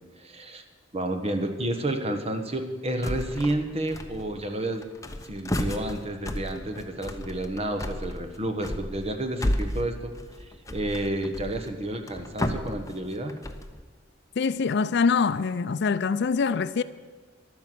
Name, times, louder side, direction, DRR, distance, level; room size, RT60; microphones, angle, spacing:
voice 1, 0.2-0.6 0.9-4.9 5.2-10.1 10.7-13.3, right 1 dB, 35° right, 1.3 m, -30 dB
sound 1, 3.0-3.6 3.9-4.5 4.8-13.8, left 1 dB, 15° left, 0.8 m, -33 dB
voice 2, 14.4-16.8, left 5 dB, 60° left, 0.5 m, -24 dB
12.0 x 9.5 x 7.6 m
head